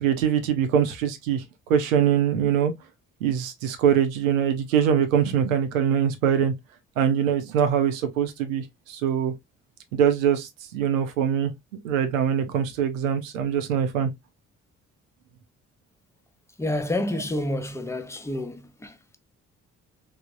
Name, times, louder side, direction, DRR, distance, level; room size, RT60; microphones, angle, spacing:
voice 1, 0.0-1.4 1.7-2.7 3.2-6.5 7.0-9.3 9.9-11.5 11.8-14.1, right 8 dB, 80° right, 0.5 m, -23 dB
voice 2, 16.6-19.2, left 1 dB, 5° left, 0.5 m, -29 dB
3.3 x 2.0 x 2.5 m
figure-of-eight pair, 40°, 39 cm